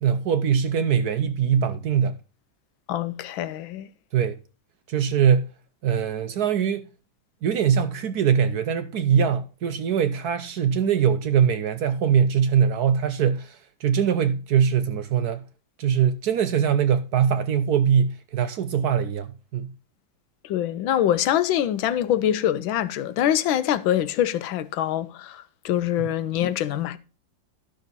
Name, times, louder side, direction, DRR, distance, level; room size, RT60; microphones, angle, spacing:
voice 1, 0.0-2.1 4.1-4.4 4.9-5.5 5.8-6.8 7.4-15.4 15.8-19.7, right 8 dB, 65° right, 1.0 m, -22 dB
voice 2, 2.9-3.9 20.4-27.0, left 11 dB, 85° left, 1.5 m, -24 dB
11.5 x 6.4 x 3.9 m
omnidirectional pair, 2.1 m